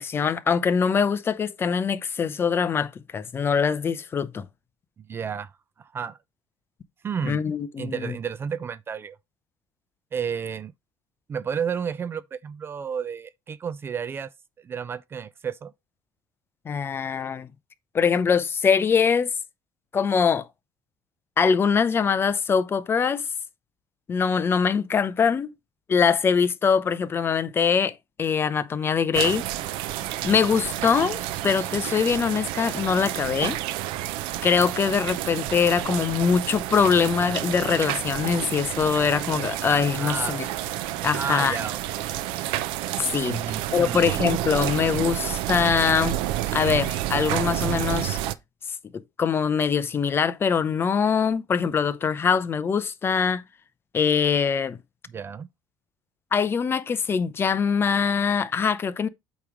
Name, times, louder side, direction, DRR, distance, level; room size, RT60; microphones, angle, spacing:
voice 1, 0.0-4.5 7.2-8.1 16.7-17.5 17.9-19.3 19.9-20.5 21.4-23.2 24.1-25.5 25.9-29.5 30.2-31.2 31.4-33.6 34.4-40.5 41.0-41.6 43.0-43.4 43.7-46.2 46.5-48.2 49.2-53.4 53.9-54.8 56.3-59.1, left 6 dB, 25° left, 0.6 m, -23 dB
voice 2, 5.0-5.5 5.8-6.2 7.0-7.4 7.8-9.2 10.1-10.7 11.3-14.3 14.6-15.7 40.0-40.4 41.1-42.2 43.2-44.2 55.1-55.5, right 7 dB, 25° right, 0.3 m, -32 dB
sound 1, 29.1-48.3, right 14 dB, 80° right, 0.6 m, -29 dB
8.4 x 3.1 x 4.9 m
cardioid pair, 135°, 9 cm